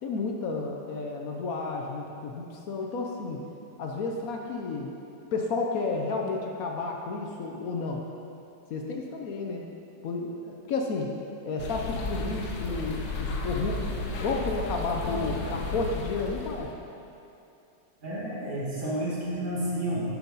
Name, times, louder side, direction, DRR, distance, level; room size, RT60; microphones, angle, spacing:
voice 1, 0.0-3.4 3.8-4.9 5.3-8.0 8.7-9.7 10.0-11.1 11.4-13.9 14.2-16.7, left 3 dB, 65° left, 1 dB, 1.0 m, -31 dB
sound 1, 11.6-16.7, left 2 dB, 85° left, 1.5 m, -33 dB
voice 2, 18.0-20.0, right 1 dB, 30° right, -7 dB, 1.8 m, -30 dB
10.5 x 6.0 x 4.0 m, 2.7 s
omnidirectional pair, 1.9 m